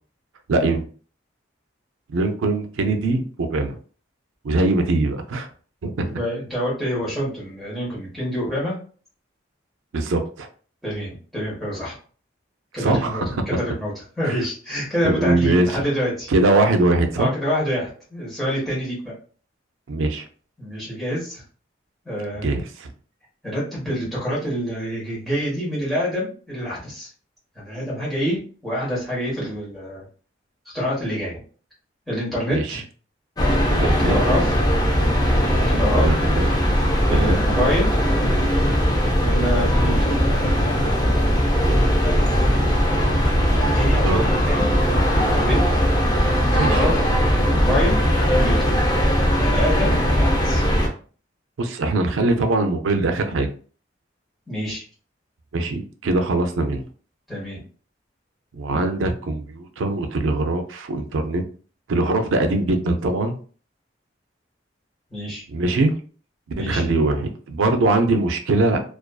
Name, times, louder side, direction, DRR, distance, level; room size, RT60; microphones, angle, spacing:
voice 1, 0.5-0.8 2.1-3.8 4.4-5.5 5.8-6.1 9.9-10.5 12.8-13.4 14.2-14.4 15.0-15.8 16.3-17.3 19.9-20.2 22.4-22.9 32.5-32.8 33.8-34.1 36.0-36.6 37.1-37.4 39.8-39.9 43.5-43.7 44.0-44.3 46.5-46.8 51.6-53.5 55.5-56.8 58.5-61.4 61.9-63.3 65.5-66.0 66.6-68.8, right 2 dB, 90° right, 7 dB, 0.4 m, -22 dB
voice 2, 6.1-8.8 10.8-12.0 12.7-13.2 13.5-16.3 17.2-19.1 20.6-21.4 22.0-22.5 23.4-27.1 27.5-30.0 30.7-31.4 32.1-32.8 33.8-34.7 35.7-36.1 37.1-37.9 39.2-40.2 43.7-44.7 45.1-45.8 46.5-47.0 47.3-48.7 49.4-50.7 54.5-54.8 57.3-57.6 65.1-65.4 66.6-66.8, equal, ahead, -8 dB, 1.0 m, -26 dB
sound 1, 33.4-50.9, equal, 20° left, 0.4 m, -19 dB
2.5 x 2.3 x 2.2 m, 0.41 s
head